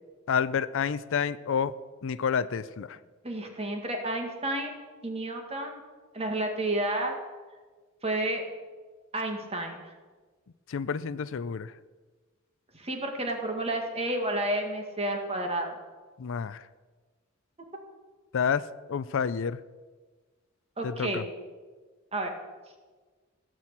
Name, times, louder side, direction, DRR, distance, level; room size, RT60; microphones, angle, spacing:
voice 1, 0.3-1.7 2.0-3.0 10.7-11.7 16.2-16.7 18.3-19.6 20.8-21.2, left 6 dB, 65° left, 16 dB, 0.5 m, -29 dB
voice 2, 3.2-5.8 6.1-7.2 8.0-8.4 9.1-9.9 12.7-15.8 20.8-21.2 22.1-22.3, right 1 dB, 30° right, 3 dB, 2.0 m, -31 dB
16.0 x 6.2 x 8.7 m, 1.4 s
head